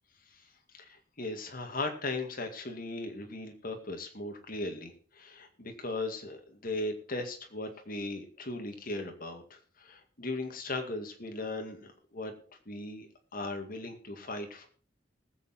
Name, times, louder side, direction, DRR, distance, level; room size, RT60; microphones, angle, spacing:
voice 1, 0.8-13.1 13.3-14.7, left 2 dB, 50° left, 5 dB, 2.2 m, -38 dB
19.5 x 8.1 x 4.3 m, 0.41 s
head